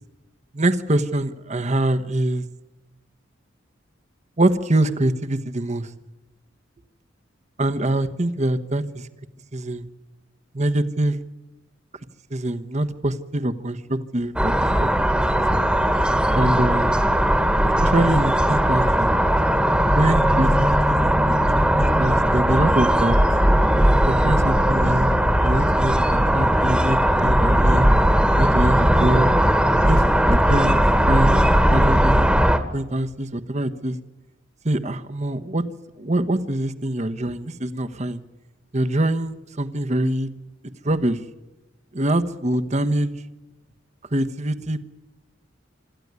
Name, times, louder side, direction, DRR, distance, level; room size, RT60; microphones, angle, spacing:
voice 1, 0.5-2.4 4.4-5.9 7.6-9.1 9.5-9.8 10.5-11.2 12.3-14.9 15.4-15.6 16.3-17.0 17.6-19.1 19.9-23.2 24.2-27.9 28.4-29.3 29.8-30.8 31.1-31.4 31.7-32.3 32.7-34.0 34.6-35.6 36.0-38.2 38.7-40.3 40.8-41.2 41.9-43.2 44.1-44.8, right 1 dB, 35° right, 10 dB, 1.2 m, -24 dB
sound 1, 14.4-32.6, equal, 5° right, 1.6 m, -18 dB
26.0 x 14.0 x 9.6 m, 1.1 s
head